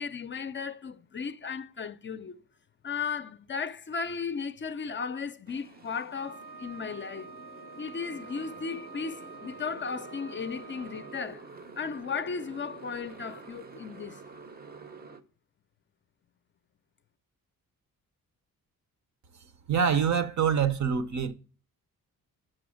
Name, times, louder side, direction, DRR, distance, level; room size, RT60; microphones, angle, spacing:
voice 1, 0.0-2.4 2.8-7.3 7.8-11.5 11.8-14.2, left 5 dB, 35° left, 0.5 m, -35 dB
Motorcycle, 5.5-15.2, right 4 dB, 30° right, 0.6 m, -48 dB
Wind instrument woodwind instrument, 6.1-11.3, right 3 dB, 85° right, 0.8 m, -48 dB
voice 2, 19.7-21.3, right 7 dB, 55° right, 0.8 m, -25 dB
6.9 x 6.2 x 6.3 m
wide cardioid pair, 145°, 34 cm